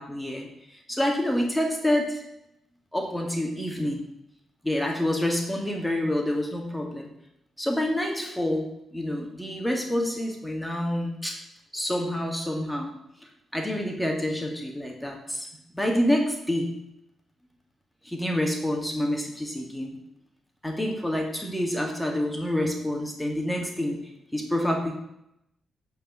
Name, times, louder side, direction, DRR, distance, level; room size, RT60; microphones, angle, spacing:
voice 1, 0.0-0.5 0.9-2.3 2.9-4.0 4.6-7.1 7.6-8.7 8.9-11.4 11.7-12.9 13.5-15.5 15.7-16.7 18.0-20.0 20.6-24.0 24.3-24.9, left 1 dB, 10° left, 1 dB, 2.1 m, -27 dB
8.9 x 4.7 x 7.0 m, 0.82 s
hypercardioid pair, 45°, 0 cm